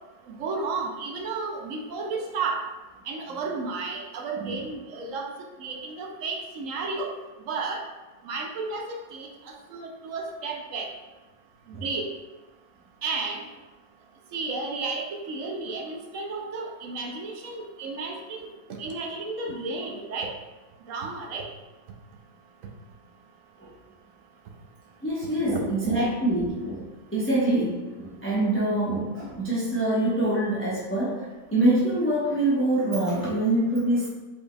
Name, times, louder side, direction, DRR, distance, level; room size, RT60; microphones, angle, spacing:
voice 1, 0.4-2.6 3.1-5.3 5.6-7.1 7.5-7.8 8.2-9.3 9.7-10.9 11.7-12.1 13.0-13.4 14.3-18.5 18.8-20.3 20.9-21.5 25.5-25.6, right 3 dB, 70° right, 2 dB, 0.8 m, -32 dB
voice 2, 25.0-26.9 27.1-31.2 31.5-34.1, right 1 dB, 15° left, -8 dB, 0.5 m, -25 dB
5.0 x 4.3 x 2.2 m, 1.2 s
omnidirectional pair, 1.8 m